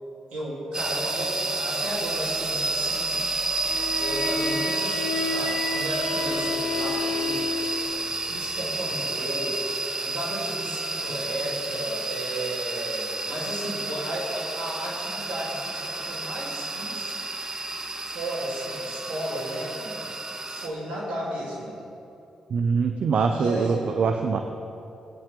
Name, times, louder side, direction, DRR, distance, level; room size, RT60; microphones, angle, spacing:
voice 1, 0.3-3.2 4.0-9.6 10.0-17.2 18.1-20.0 20.5-21.8 23.3-23.8, right 1 dB, 80° right, -6 dB, 3.3 m, -34 dB
sound 1, 0.7-20.7, right 2 dB, 30° right, 1.2 m, -30 dB
Bowed string instrument, 3.6-7.9, left 3 dB, 75° left, 1.7 m, -30 dB
voice 2, 22.5-24.4, right 5 dB, 65° right, 5 dB, 0.7 m, -23 dB
19.0 x 8.9 x 3.7 m, 2.8 s
hypercardioid pair, 45°, 2 cm